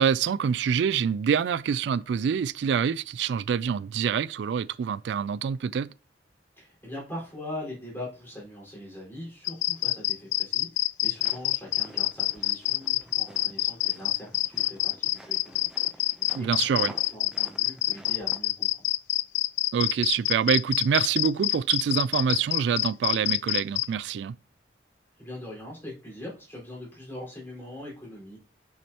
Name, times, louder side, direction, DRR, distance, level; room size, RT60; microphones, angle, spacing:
voice 1, 0.0-5.9 16.3-16.9 19.7-24.4, right 7 dB, 80° right, 0.3 m, -26 dB
voice 2, 6.6-16.8 17.1-18.7 25.2-28.4, left 1 dB, 10° left, 4.5 m, -42 dB
sound 1, 9.5-23.9, left 17 dB, 75° left, 0.3 m, -26 dB
sound 2, 11.1-18.4, right 1 dB, 5° right, 0.6 m, -50 dB
8.4 x 6.4 x 2.9 m
head